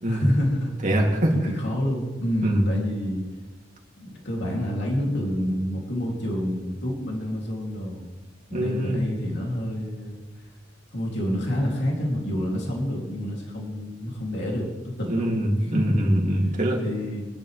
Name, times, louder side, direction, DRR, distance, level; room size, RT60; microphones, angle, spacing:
voice 1, 0.1-0.7 1.3-3.2 4.0-8.0 8.5-10.2 10.9-16.0 16.8-17.2, equal, 60° left, -2 dB, 3.0 m, -28 dB
voice 2, 0.8-1.5 2.4-2.7 8.5-9.1 15.1-16.8, equal, 40° right, -1 dB, 2.9 m, -23 dB
24.5 x 11.0 x 3.4 m, 1.2 s
head